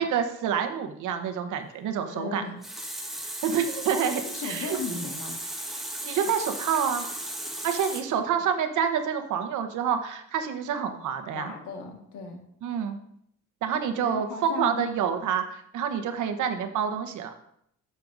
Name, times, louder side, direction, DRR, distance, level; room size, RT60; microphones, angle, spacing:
voice 1, 0.0-2.4 3.2-4.8 6.0-7.0 7.6-11.5 12.6-13.0 13.6-17.3, right 7 dB, 80° right, 7 dB, 1.0 m, -28 dB
voice 2, 2.1-2.6 4.2-5.4 11.3-12.4 13.7-14.8, left 4 dB, 80° left, 2 dB, 1.7 m, -36 dB
Water tap faucet, 2.3-8.0, right 1 dB, ahead, 1.4 m, -36 dB
10.5 x 6.7 x 2.6 m, 0.71 s
cardioid pair, 90°, 30 cm